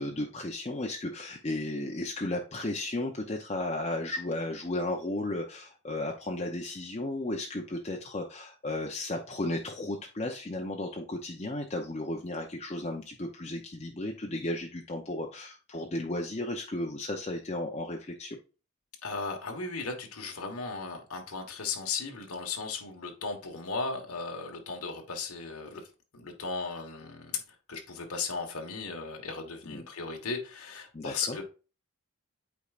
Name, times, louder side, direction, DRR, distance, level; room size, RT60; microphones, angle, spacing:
voice 1, 0.0-18.4 29.7-29.9 30.9-31.4, left 1 dB, 30° left, 0.7 m, -34 dB
voice 2, 19.0-25.8 26.1-27.4 27.7-31.4, left 4 dB, 85° left, 1.4 m, -36 dB
8.4 x 4.7 x 2.5 m
head